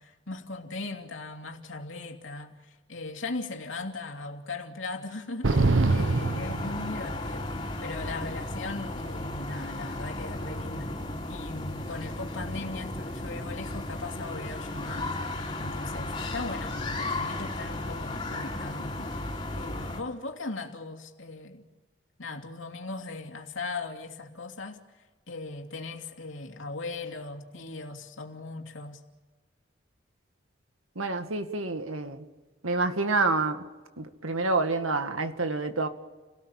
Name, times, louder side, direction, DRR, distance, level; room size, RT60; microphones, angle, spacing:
voice 1, 0.0-7.5 7.8-10.9 11.2-15.2 15.6-19.1 19.5-21.6 22.2-24.8 25.3-29.0, left 3 dB, 70° left, 2.8 m, -38 dB
sound 1, 5.4-20.0, left 2 dB, 25° left, 3.7 m, -35 dB
sound 2, 5.4-7.4, right 3 dB, 70° right, 0.8 m, -25 dB
voice 2, 31.0-32.3 32.6-33.6 34.0-35.9, right 3 dB, 90° right, 2.1 m, -28 dB
30.0 x 18.5 x 7.3 m
head